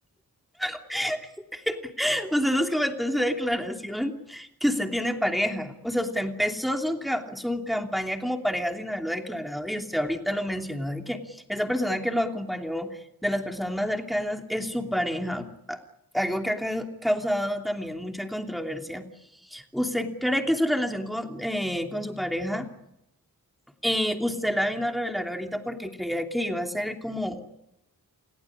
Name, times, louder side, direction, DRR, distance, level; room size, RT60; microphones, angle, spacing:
voice 1, 0.6-1.2 1.5-15.8 16.1-19.0 19.5-22.7 23.8-27.5, equal, ahead, 3 dB, 3.0 m, -28 dB
29.5 x 17.0 x 9.9 m, 0.87 s
wide cardioid pair, 75°, 37 cm